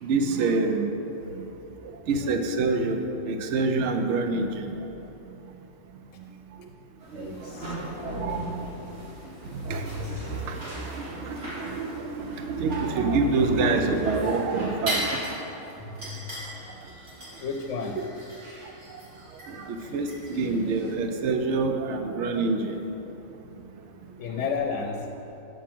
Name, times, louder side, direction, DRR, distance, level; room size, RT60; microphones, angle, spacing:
voice 1, 0.0-0.9 1.3-1.4 2.1-3.0 3.3-4.7 7.1-7.5 8.0-8.5 9.5-15.1 18.0-18.1 18.9-19.0 19.5-22.8, right 3 dB, 70° right, 5 dB, 0.9 m, -27 dB
sound 1, 4.0-5.1 9.7-11.2 15.8-16.9, left 3 dB, 10° left, 1.8 m, -42 dB
sound 2, 7.0-20.9, right 1 dB, 55° right, 2.1 m, -38 dB
voice 2, 7.1-7.8 8.0-8.5 17.4-18.0 24.2-25.1, left 5 dB, 75° left, 3 dB, 0.9 m, -32 dB
8.3 x 4.7 x 6.0 m, 2.9 s
omnidirectional pair, 1.3 m